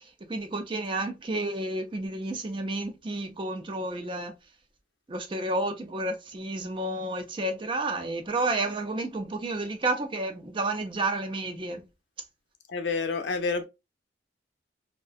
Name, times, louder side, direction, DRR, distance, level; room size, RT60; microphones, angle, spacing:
voice 1, 0.3-4.3 5.1-11.8, right 2 dB, 30° right, 0.4 m, -31 dB
voice 2, 12.7-13.6, left 4 dB, 80° left, 0.5 m, -28 dB
2.6 x 2.2 x 2.3 m
head